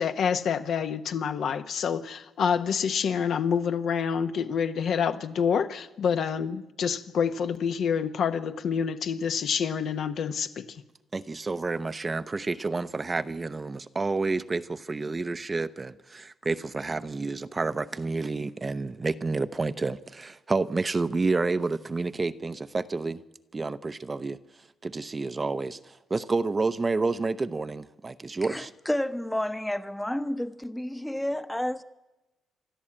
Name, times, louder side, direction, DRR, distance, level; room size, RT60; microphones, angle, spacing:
voice 1, 0.0-10.8, left 7 dB, 65° left, 1.1 m, -27 dB
voice 2, 11.1-23.2 23.5-24.4 24.8-28.7, right 3 dB, 25° right, 0.7 m, -29 dB
voice 3, 28.5-31.8, left 1 dB, 5° left, 0.9 m, -30 dB
27.5 x 12.0 x 8.8 m
cardioid pair, 90°, 0 cm